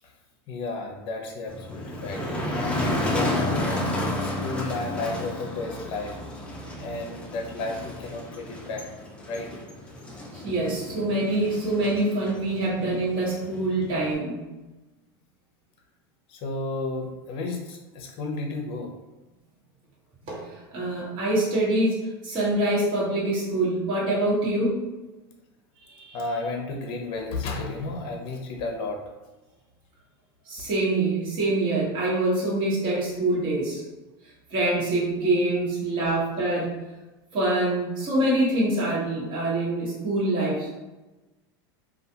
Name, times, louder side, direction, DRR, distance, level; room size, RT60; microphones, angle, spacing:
voice 1, 0.5-2.6 3.1-3.9 4.2-6.2 6.8-8.8 9.3-9.5 16.3-18.9 26.1-29.0 36.0-36.2, left 3 dB, 45° left, 2 dB, 0.6 m, -33 dB
Motor vehicle (road), 1.5-14.1, left 1 dB, 10° left, 0.5 m, -31 dB
voice 2, 10.3-14.4 20.3-24.8 25.9-26.2 30.5-33.8 34.5-36.7 37.3-40.7, right 2 dB, 40° right, -6 dB, 1.2 m, -25 dB
2.4 x 2.3 x 2.8 m, 1.1 s
supercardioid pair, 120°, 12 cm